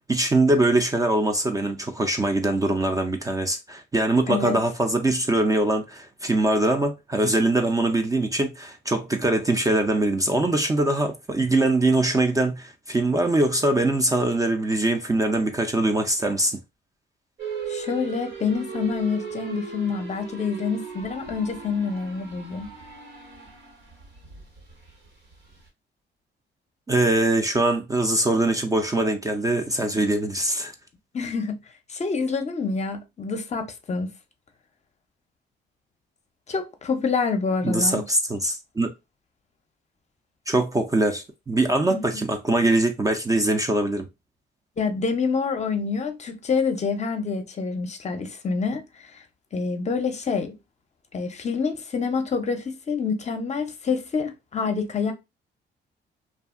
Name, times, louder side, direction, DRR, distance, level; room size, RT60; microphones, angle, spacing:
voice 1, 0.1-16.6 26.9-30.7 37.6-38.9 40.5-44.1, right 2 dB, 20° right, 0.4 m, -22 dB
voice 2, 4.3-4.6 17.7-22.7 31.1-31.6 31.9-34.1 36.5-38.0 41.9-42.0 44.8-48.8 49.1-49.2 49.5-50.5 51.1-55.1, left 5 dB, 35° left, 0.6 m, -27 dB
sound 1, 17.4-25.7, right 6 dB, 80° right, 1.3 m, -37 dB
2.6 x 2.4 x 2.4 m
cardioid pair, 90°, 20 cm